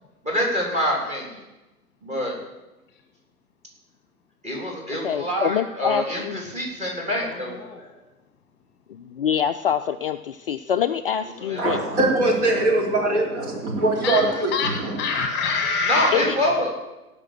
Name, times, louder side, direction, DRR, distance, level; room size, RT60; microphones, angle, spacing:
voice 1, 0.3-1.3 2.0-2.4 4.4-7.5 11.5-11.6 15.9-16.7, equal, 15° right, 0 dB, 3.5 m, -25 dB
voice 2, 5.0-6.4 8.9-11.8 16.1-16.4, left 9 dB, 40° left, 8 dB, 0.4 m, -25 dB
voice 3, 7.2-7.9 14.0-16.1, left 5 dB, 25° left, 4 dB, 1.5 m, -26 dB
voice 4, 11.6-15.0, right 2 dB, 45° right, -1 dB, 4.2 m, -22 dB
17.5 x 6.0 x 7.5 m, 1.0 s
figure-of-eight pair, 115°, 45 cm